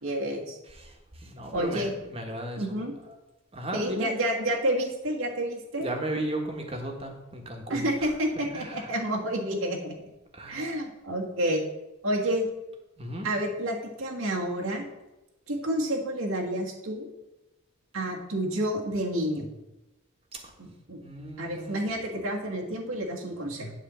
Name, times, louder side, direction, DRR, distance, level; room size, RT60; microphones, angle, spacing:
voice 1, 0.0-0.6 1.5-1.9 2.6-2.9 3.7-5.9 7.7-9.9 10.5-11.6 12.0-12.5 13.2-14.8 15.5-17.1 17.9-19.5 20.6-21.0 21.4-23.7, right 1 dB, 85° right, -1 dB, 1.6 m, -29 dB
voice 2, 0.7-2.8 3.5-4.1 5.8-8.9 10.3-10.7 13.0-13.3 20.3-20.4 21.0-21.8, right 1 dB, 25° right, 2 dB, 1.4 m, -36 dB
9.2 x 4.5 x 7.5 m, 0.97 s
head